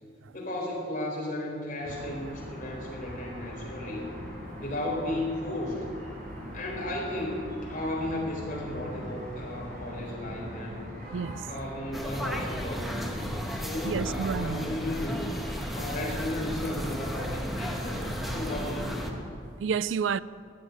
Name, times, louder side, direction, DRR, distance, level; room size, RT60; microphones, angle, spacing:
voice 1, 0.3-4.1 4.6-5.9 6.5-10.9 11.5-15.3 15.7-19.1, left 1 dB, 45° left, 3.9 m, -34 dB
sound 1, 1.8-19.2, equal, 55° right, 3.9 m, -40 dB
voice 2, 11.1-11.5 13.8-14.7 19.6-20.2, right 6 dB, 90° right, 0.4 m, -30 dB
sound 2, 11.9-19.1, equal, ahead, 1.1 m, -35 dB
15.0 x 6.6 x 9.7 m
head